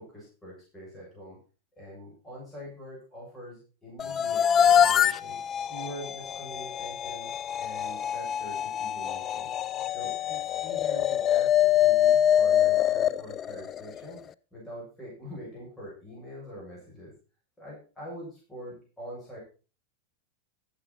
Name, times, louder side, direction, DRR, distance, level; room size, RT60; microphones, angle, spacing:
voice 1, 0.0-1.4 1.8-5.4 5.7-9.5 9.9-14.2 14.5-17.1 17.6-19.4, equal, 10° left, -5 dB, 7.1 m, -44 dB
sound 1, 4.0-14.2, left 10 dB, 30° left, 0.5 m, -25 dB
13.5 x 9.1 x 4.2 m, 0.35 s
hypercardioid pair, 125°, 0 cm